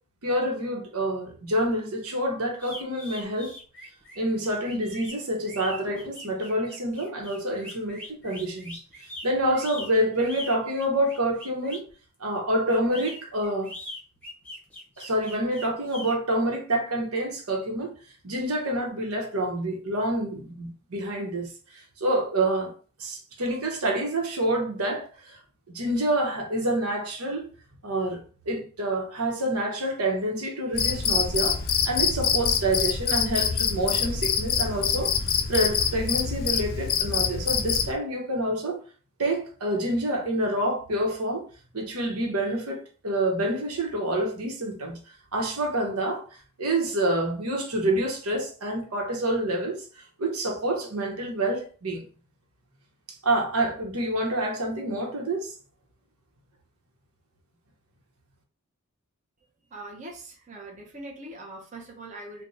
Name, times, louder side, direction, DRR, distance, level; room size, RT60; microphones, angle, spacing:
voice 1, 0.2-3.5 4.2-8.8 9.2-11.8 12.2-13.7 15.0-17.9 18.2-22.7 23.0-25.4 25.7-27.5 27.8-35.1 35.5-38.8 39.2-41.4 41.7-45.0 45.3-46.2 46.6-49.8 50.2-52.0 53.2-55.5, right 1 dB, 85° right, 1.0 m, -27 dB
sound 1, 2.6-11.9 12.7-16.1, left 1 dB, 5° left, 0.8 m, -42 dB
Cricket, 30.7-37.9, left 7 dB, 40° left, 0.4 m, -25 dB
voice 2, 59.7-62.4, right 2 dB, 35° right, 0.7 m, -42 dB
3.4 x 2.2 x 4.1 m
head